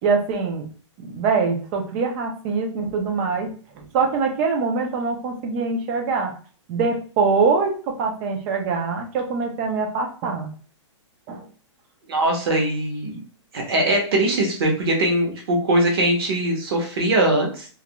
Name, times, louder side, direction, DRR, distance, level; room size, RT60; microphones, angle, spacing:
voice 1, 0.0-0.6 1.0-6.3 6.7-10.5 11.3-11.5, right 4 dB, 20° right, 2 dB, 0.4 m, -23 dB
voice 2, 12.1-13.2 13.5-17.7, right 1 dB, 50° right, 1 dB, 0.9 m, -21 dB
2.4 x 2.1 x 2.8 m, 0.41 s
hypercardioid pair, 165°, 16 cm